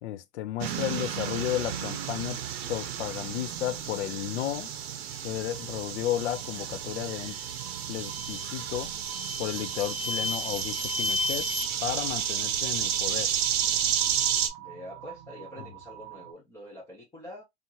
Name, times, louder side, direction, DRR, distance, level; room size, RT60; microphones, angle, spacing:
voice 1, 0.0-2.4 2.7-4.7 5.2-7.4 7.9-8.9 9.4-11.5 11.8-13.3, left 13 dB, 75° left, 0.5 m, -33 dB
sound 1, 0.6-14.5, right 9 dB, 60° right, 0.7 m, -32 dB
sound 2, 5.5-16.3, right 12 dB, 40° right, 0.4 m, -48 dB
Ear Ringing (After explosion), 7.2-7.5 8.0-8.5 9.0-11.7, left 3 dB, 50° left, 1.1 m, -34 dB
voice 2, 14.6-17.4, left 1 dB, 10° left, 0.6 m, -45 dB
2.8 x 2.5 x 2.7 m
supercardioid pair, 165°, 35 cm